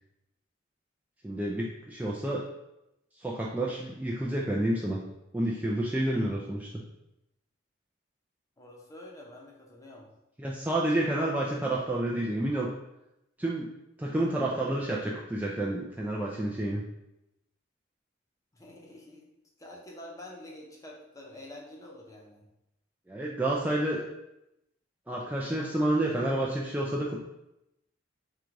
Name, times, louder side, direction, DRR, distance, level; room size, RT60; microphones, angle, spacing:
voice 1, 1.2-2.4 3.2-5.0 5.3-6.7 10.4-12.7 13.4-13.7 14.0-16.8 23.1-24.0 25.1-27.2, right 1 dB, 10° right, -4 dB, 0.3 m, -29 dB
voice 2, 8.6-10.1 18.5-19.2 19.6-22.4, left 1 dB, 20° left, -2 dB, 0.8 m, -47 dB
3.7 x 2.4 x 4.6 m, 0.89 s
head